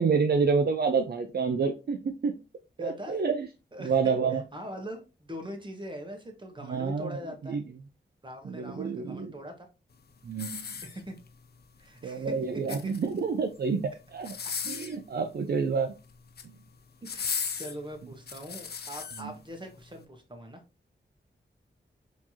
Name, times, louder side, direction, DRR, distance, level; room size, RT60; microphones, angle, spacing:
voice 1, 0.0-2.4 2.8-3.5 3.8-4.4 6.6-7.2 7.5-7.6 8.4-9.3 10.2-10.6 12.0-14.3 14.6-15.9 19.2-19.3, right 5 dB, 55° right, 6 dB, 0.5 m, -28 dB
voice 2, 2.8-3.2 3.7-7.6 8.2-9.7 10.8-11.2 11.8-12.4 12.7-12.9 17.0-20.6, equal, 25° right, 4 dB, 1.2 m, -42 dB
sound 1, 10.3-11.4 12.5-13.2 14.2-15.0 16.1-16.5 17.0-19.2 19.8-19.9, left 6 dB, 55° left, 0.5 m, -36 dB
4.3 x 3.0 x 2.7 m, 0.30 s
cardioid pair, 60°, 19 cm